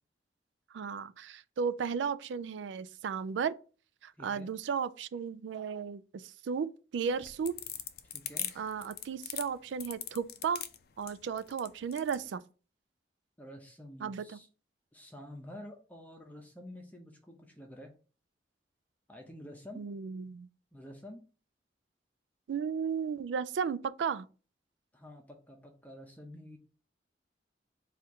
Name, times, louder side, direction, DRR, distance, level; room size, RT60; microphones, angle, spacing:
voice 1, 0.7-3.6 4.0-7.6 8.6-10.6 11.0-12.4 14.0-14.2 19.8-20.5 22.5-24.3, right 6 dB, 85° right, 0.3 m, -34 dB
voice 2, 4.2-4.5 8.1-8.5 13.4-14.5 14.9-17.9 19.1-19.8 20.7-21.2 24.9-26.6, left 1 dB, 10° left, 0.6 m, -49 dB
sound 1, 7.1-12.2, left 11 dB, 55° left, 0.4 m, -40 dB
4.3 x 2.5 x 4.6 m
head